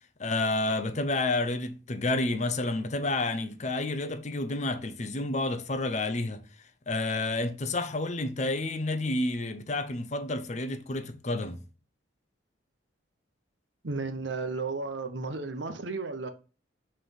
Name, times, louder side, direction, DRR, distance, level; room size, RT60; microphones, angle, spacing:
voice 1, 0.2-11.6, left 2 dB, 35° left, 0.6 m, -30 dB
voice 2, 13.8-16.3, right 3 dB, 65° right, 0.8 m, -33 dB
5.7 x 3.3 x 5.5 m
head